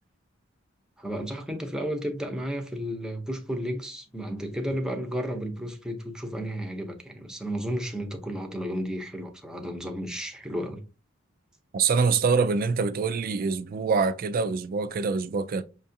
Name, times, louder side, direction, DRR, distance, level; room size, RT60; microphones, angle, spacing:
voice 1, 1.0-10.8, equal, 5° right, 0.7 m, -33 dB
voice 2, 11.7-15.6, right 5 dB, 50° right, 0.3 m, -25 dB
5.8 x 2.4 x 2.7 m
head